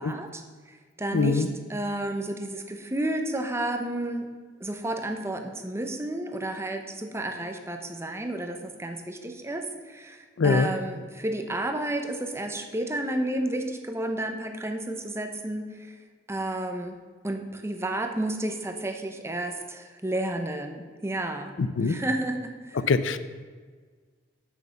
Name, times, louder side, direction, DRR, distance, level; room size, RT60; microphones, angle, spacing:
voice 1, 0.0-1.4 1.7-4.3 4.6-16.0 16.3-17.0 17.2-21.5 21.8-22.8, right 1 dB, 15° right, 5 dB, 0.8 m, -31 dB
voice 2, 1.1-1.5 10.4-10.7 21.6-22.0 22.9-23.2, left 4 dB, 90° left, 13 dB, 0.5 m, -23 dB
6.9 x 6.4 x 7.0 m, 1.5 s
head